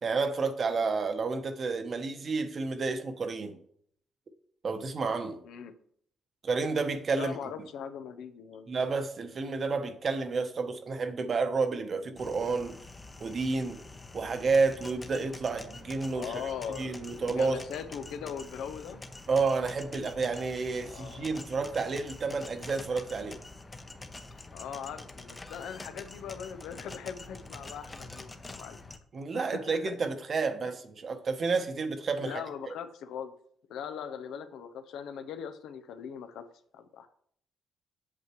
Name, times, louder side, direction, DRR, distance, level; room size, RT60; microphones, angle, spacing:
voice 1, 0.0-3.6 4.6-5.4 6.4-7.4 8.7-12.8 13.2-13.8 14.1-16.4 16.8-17.6 19.3-23.4 29.1-32.4, right 4 dB, 40° right, 0.9 m, -30 dB
voice 2, 7.1-8.7 16.1-19.0 20.8-21.4 24.5-28.8 29.3-29.8 30.6-30.7 32.2-33.3 33.7-36.5 36.7-37.1, left 7 dB, 85° left, 0.7 m, -40 dB
sound 1, 12.2-29.0, left 2 dB, 20° left, 0.7 m, -46 dB
8.3 x 7.2 x 3.1 m
cardioid pair, 125°, 0 cm